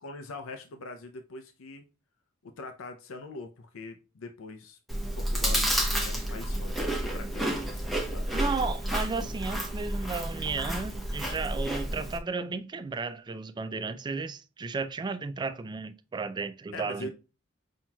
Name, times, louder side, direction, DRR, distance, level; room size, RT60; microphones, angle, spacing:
voice 1, 0.0-1.9 2.4-4.8 5.2-8.3 16.7-17.1, left 2 dB, 80° left, 0.5 m, -43 dB
Chewing mastication, 4.9-12.2, right 1 dB, ahead, 0.8 m, -30 dB
voice 2, 8.3-17.1, right 4 dB, 20° right, 0.3 m, -34 dB
5.6 x 3.0 x 2.2 m
head